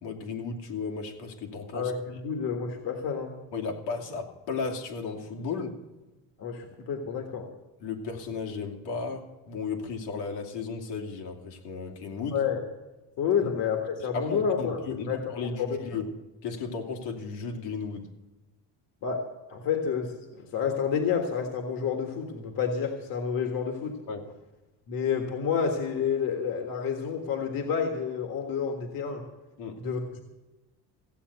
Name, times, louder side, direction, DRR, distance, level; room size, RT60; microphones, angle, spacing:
voice 1, 0.0-1.9 3.5-5.8 7.8-12.4 13.4-13.5 14.1-16.1 16.4-18.1 24.1-24.2 29.6-29.8, left 4 dB, 80° left, 2 dB, 2.6 m, -34 dB
voice 2, 1.7-3.3 6.4-7.5 12.3-12.6 13.2-14.8 15.1-15.8 19.0-19.2 19.5-24.0 24.9-29.2 29.8-30.0, left 7 dB, 55° left, 3 dB, 1.7 m, -29 dB
15.5 x 8.5 x 8.0 m, 1.1 s
cardioid pair, 165°, 41 cm